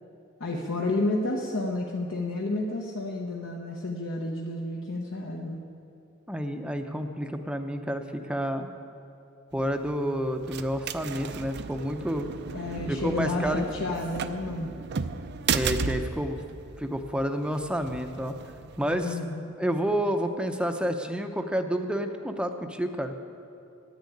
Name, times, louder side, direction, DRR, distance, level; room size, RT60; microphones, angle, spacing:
voice 1, 0.4-5.6 12.5-14.7 18.9-19.6, left 2 dB, 60° left, -1 dB, 1.0 m, -31 dB
voice 2, 6.3-8.7 9.5-12.3 12.9-13.6 15.5-16.4 16.8-18.4 18.8-19.2 19.6-23.1, equal, 5° right, 6 dB, 0.6 m, -29 dB
sound 1, 9.5-19.1, right 5 dB, 50° right, 0.5 m, -35 dB
10.5 x 10.0 x 8.4 m, 2.7 s
head